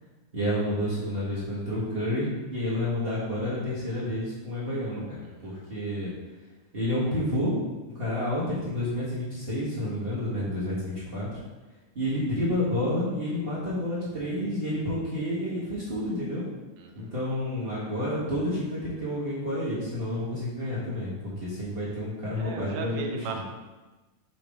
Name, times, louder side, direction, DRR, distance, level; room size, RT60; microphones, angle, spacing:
voice 1, 0.3-6.1 6.7-7.5 7.9-11.4 11.9-16.4 16.9-23.2, left 1 dB, 30° right, -9 dB, 1.0 m, -30 dB
voice 2, 5.2-5.6 16.8-17.1 22.3-23.4, right 5 dB, 75° right, 2 dB, 1.4 m, -37 dB
7.3 x 3.9 x 3.6 m, 1.2 s
omnidirectional pair, 3.3 m